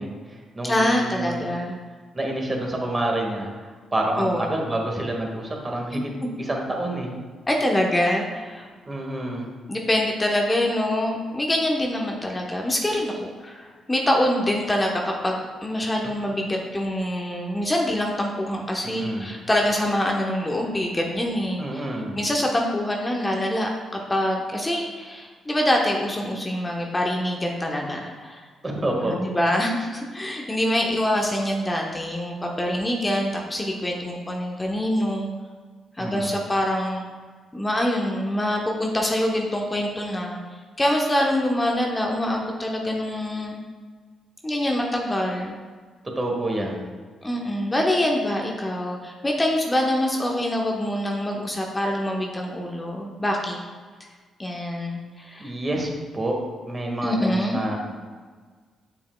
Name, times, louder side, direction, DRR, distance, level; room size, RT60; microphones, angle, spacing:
voice 1, 0.0-1.4 2.1-6.1 6.4-7.1 8.8-9.5 18.8-19.3 21.6-22.2 28.6-29.2 36.0-36.4 46.1-46.9 55.4-56.4 56.7-57.8, right 1 dB, 25° right, 0 dB, 1.7 m, -28 dB
voice 2, 0.6-1.8 4.2-4.5 5.9-6.0 7.5-8.7 9.7-21.8 22.2-23.7 24.1-28.4 29.0-35.3 36.0-37.0 37.5-40.4 40.8-43.6 44.4-45.5 47.2-53.6 54.4-55.5 57.0-57.6, left 1 dB, 20° left, 0 dB, 1.0 m, -25 dB
8.3 x 7.0 x 2.2 m, 1.5 s
figure-of-eight pair, 40°, 0 cm